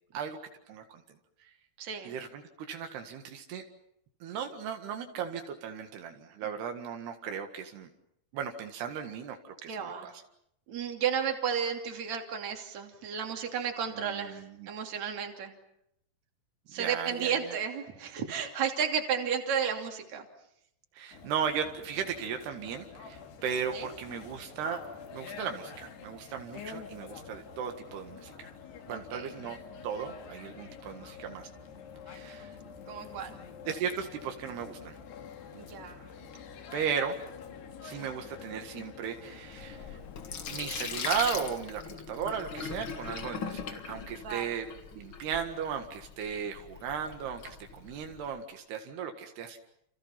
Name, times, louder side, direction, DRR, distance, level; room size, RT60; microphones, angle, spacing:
voice 1, 0.7-1.0 2.1-2.4 2.7-3.6 4.2-7.9 8.3-10.1 13.9-14.7 16.7-17.5 20.9-24.8 25.1-28.5 28.9-29.6 29.8-31.5 32.1-32.5 33.7-35.0 36.7-37.2 37.8-40.0 40.4-44.7 44.9-49.6, right 7 dB, 85° right, 5 dB, 3.9 m, -36 dB
voice 2, 1.8-2.1 9.7-10.1 10.7-15.5 16.7-20.2 23.7-23.9 28.9-29.3 32.9-33.4 35.5-36.1 44.2-44.5, right 7 dB, 45° right, 3 dB, 3.9 m, -33 dB
sound 1, 21.1-41.1, left 6 dB, 85° left, 4.5 m, -47 dB
Sink (filling or washing), 39.5-48.3, left 6 dB, 50° left, 1.6 m, -40 dB
29.5 x 29.0 x 5.9 m, 0.74 s
omnidirectional pair, 4.6 m